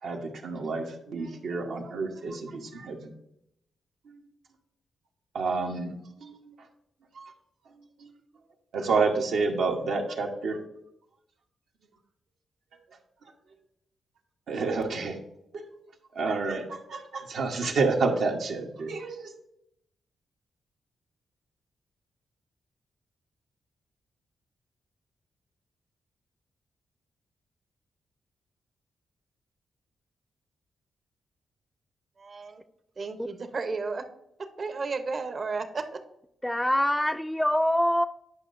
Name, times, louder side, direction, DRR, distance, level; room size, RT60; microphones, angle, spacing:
voice 1, 0.0-3.1 4.0-4.2 5.3-6.7 7.1-7.3 7.7-8.1 8.7-10.6 13.2-13.3 14.5-15.2 15.5-15.7 16.1-19.3, right 4 dB, 80° right, 1 dB, 1.1 m, -29 dB
voice 2, 32.2-32.6 33.0-34.1 34.4-36.0, right 4 dB, 50° right, 8 dB, 0.8 m, -33 dB
voice 3, 36.4-38.0, equal, 5° left, 10 dB, 0.4 m, -24 dB
9.8 x 5.4 x 2.6 m, 0.79 s
cardioid pair, 70°, 0 cm